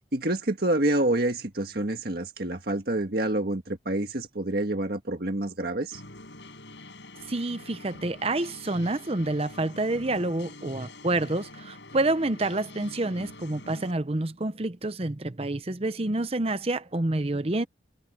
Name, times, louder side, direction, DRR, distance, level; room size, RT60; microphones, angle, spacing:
voice 1, 0.0-6.0, right 1 dB, 55° right, 1.8 m, -27 dB
sound 1, 5.9-13.9, left 2 dB, 80° left, 7.7 m, -46 dB
voice 2, 7.3-17.7, right 2 dB, 35° right, 0.8 m, -28 dB
head